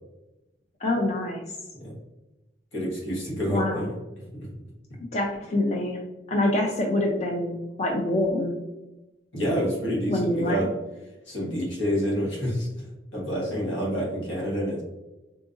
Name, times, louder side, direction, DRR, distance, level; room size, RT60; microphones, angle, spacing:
voice 1, 0.8-1.4 3.5-3.9 5.1-6.0 6.3-8.5 10.1-10.7, left 1 dB, 35° left, 0 dB, 0.4 m, -25 dB
voice 2, 2.7-3.9 4.3-4.5 9.3-10.7 11.3-12.7 13.1-14.8, equal, 85° left, -3 dB, 1.2 m, -28 dB
3.8 x 2.4 x 2.5 m, 1.0 s
head